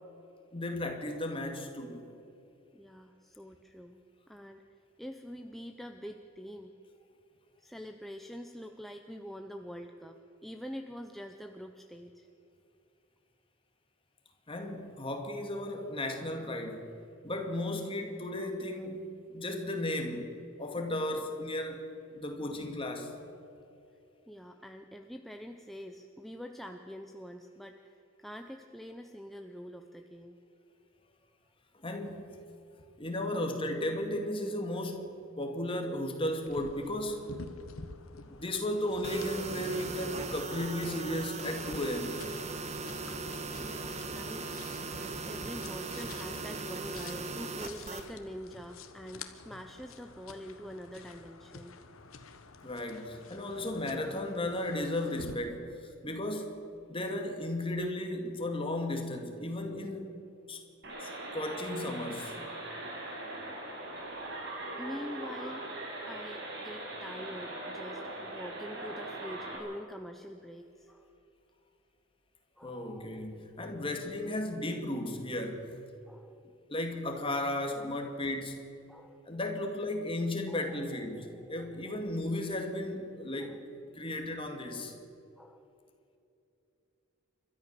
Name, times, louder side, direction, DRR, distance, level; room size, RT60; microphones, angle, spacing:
voice 1, 0.5-2.0 14.5-16.9 17.2-23.1 31.7-32.4 33.0-37.3 38.3-42.2 52.6-56.6 56.9-60.2 60.5-60.6 61.0-62.4 72.6-75.8 76.7-78.6 79.3-83.6 83.9-84.9, left 1 dB, 25° left, 2.3 m, -35 dB
voice 2, 2.7-4.0 4.3-4.6 5.0-6.7 7.6-12.3 24.3-30.4 43.2-44.5 44.9-51.8 64.8-65.7 66.1-71.1 72.6-73.8 74.9-75.1 76.0-76.5 77.7-77.9 78.9-79.3 80.5-80.8 81.9-82.0 83.4-83.6 85.4-85.7, equal, ahead, 0.7 m, -45 dB
sound 1, 36.4-55.4, left 4 dB, 85° left, 1.3 m, -51 dB
sound 2, 39.0-48.1, right 3 dB, 35° right, 1.3 m, -39 dB
sound 3, 60.8-69.6, right 1 dB, 60° right, 5.6 m, -41 dB
29.5 x 13.0 x 6.8 m
head